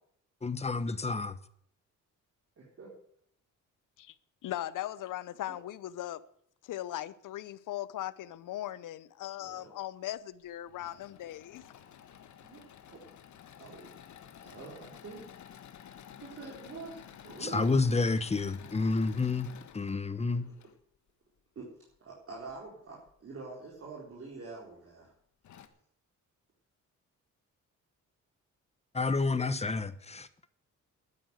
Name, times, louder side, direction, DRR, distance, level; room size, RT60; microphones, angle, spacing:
voice 1, 0.4-1.4 17.4-19.5 19.7-20.4 28.9-30.3, left 3 dB, 20° left, 1.0 m, -29 dB
voice 2, 2.6-2.9 5.5-5.6 9.4-9.7 12.4-12.6 12.9-13.0 13.6-13.9 14.4-15.2 16.2-17.7 21.6-21.7 22.0-25.1, right 4 dB, 45° right, 4.1 m, -45 dB
voice 3, 4.4-6.2 6.6-11.6, left 13 dB, 85° left, 0.9 m, -39 dB
Engine / Mechanisms, 10.5-20.8 22.4-23.1 23.7-23.8 24.1-24.2 25.0-25.1 25.4-25.7, left 9 dB, 65° left, 1.4 m, -52 dB
12.0 x 9.7 x 8.1 m
cardioid pair, 115°, 31 cm